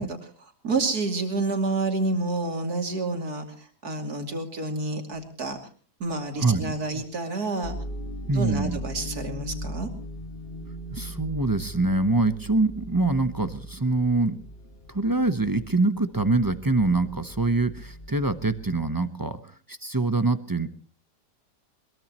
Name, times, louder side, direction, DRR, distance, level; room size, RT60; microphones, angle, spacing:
voice 1, 0.0-5.6 6.0-7.8 8.3-9.9, right 3 dB, 60° right, 4 dB, 3.2 m, -29 dB
voice 2, 6.4-7.0 8.3-8.8 10.9-14.4 14.9-19.4 19.7-20.7, right 3 dB, 20° right, 11 dB, 0.7 m, -24 dB
sound 1, 7.6-18.9, equal, 35° left, 1.8 m, -39 dB
22.0 x 22.0 x 3.0 m, 0.41 s
omnidirectional pair, 1.8 m